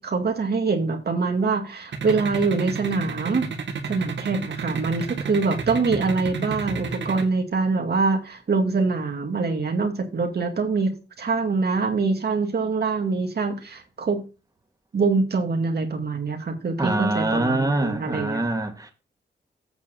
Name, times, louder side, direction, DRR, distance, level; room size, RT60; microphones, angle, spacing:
voice 1, 0.0-3.5 3.9-14.2 14.9-18.4, right 4 dB, 60° right, 2.1 m, -24 dB
sound 1, 1.9-7.2, right 5 dB, 80° right, 1.9 m, -30 dB
voice 2, 16.8-18.9, right 1 dB, 20° right, 2.2 m, -24 dB
8.3 x 4.7 x 7.2 m
cardioid pair, 55°, 18 cm